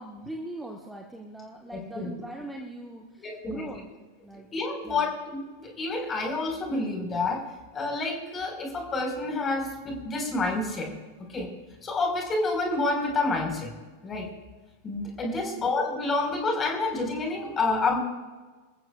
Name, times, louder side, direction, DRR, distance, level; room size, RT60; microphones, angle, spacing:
voice 1, 0.0-3.9 4.2-4.5 4.8-5.1 15.2-15.7 17.9-18.0, right 1 dB, 5° right, 0 dB, 1.4 m, -41 dB
voice 2, 1.7-2.1 3.2-3.6 4.5-7.4 7.7-10.9 11.3-11.5 11.8-13.7 14.0-14.3 14.8-18.0, left 3 dB, 20° left, 1 dB, 4.7 m, -28 dB
28.0 x 14.0 x 2.4 m, 1.3 s
figure-of-eight pair, 90°, 0 cm